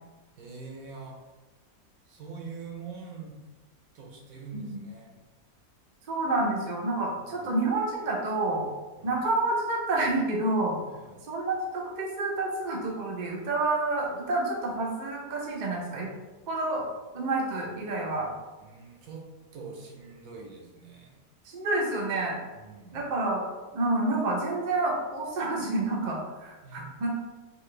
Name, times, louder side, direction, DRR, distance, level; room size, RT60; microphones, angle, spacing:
voice 1, 0.4-1.2 2.1-3.4 3.9-5.1 7.3-7.5 9.0-9.2 11.0-11.3 18.6-19.2 19.5-21.1 22.5-23.0 26.6-26.9, right 4 dB, 75° right, 0 dB, 1.1 m, -44 dB
voice 2, 4.5-4.8 6.1-8.7 9.0-10.8 11.3-16.1 16.5-16.9 17.1-18.3 21.5-22.4 22.9-23.5 23.7-27.1, right 2 dB, 45° right, -1 dB, 0.6 m, -29 dB
4.3 x 2.4 x 3.2 m, 1.2 s
omnidirectional pair, 1.5 m